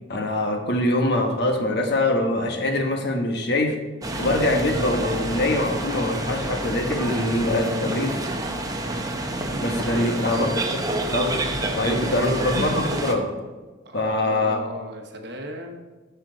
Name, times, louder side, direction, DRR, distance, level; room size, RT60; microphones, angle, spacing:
voice 1, 0.1-3.7 4.2-8.1 9.6-10.5 11.1-11.4 11.8-13.2 13.9-14.6, left 1 dB, 60° left, 3 dB, 1.2 m, -23 dB
sound 1, 4.0-13.1, right 1 dB, 20° right, 0.7 m, -28 dB
voice 2, 9.5-10.4 11.9-12.3 13.8-15.8, right 1 dB, 60° right, 4 dB, 1.0 m, -36 dB
12.5 x 4.5 x 3.9 m, 1.3 s
head